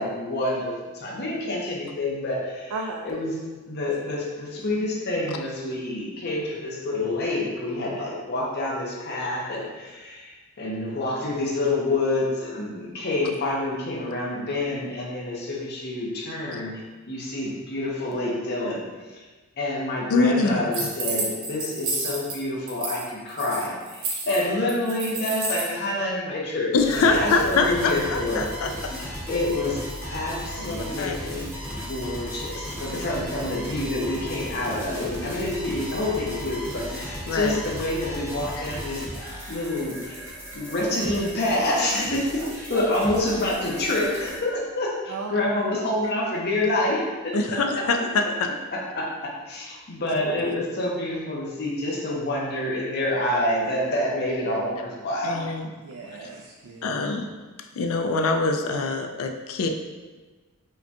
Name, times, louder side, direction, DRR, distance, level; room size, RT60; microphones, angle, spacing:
voice 1, 0.0-2.7 3.0-3.3 3.7-19.2 19.6-28.5 29.3-29.8 30.1-40.2 40.5-47.8 48.7-55.5, left 1 dB, 50° left, -3 dB, 0.7 m, -27 dB
voice 2, 2.7-3.1 32.8-33.0 42.4-42.8 45.1-45.4 47.3-47.7 55.8-57.1, right 3 dB, 70° right, 1 dB, 0.3 m, -36 dB
voice 3, 20.1-20.9 26.7-28.7 29.0-29.1 30.6-31.4 37.3-37.6 47.3-48.5 55.2-55.7 56.8-57.3 57.8-59.7, left 3 dB, 65° left, 5 dB, 0.4 m, -24 dB
sound 1, 20.7-22.4 22.7-23.0 23.3-25.7, right 3 dB, 85° right, 0.8 m, -30 dB
sound 2, 26.8-44.4, equal, 10° right, 0.8 m, -36 dB
4.8 x 2.2 x 2.8 m, 1.3 s
head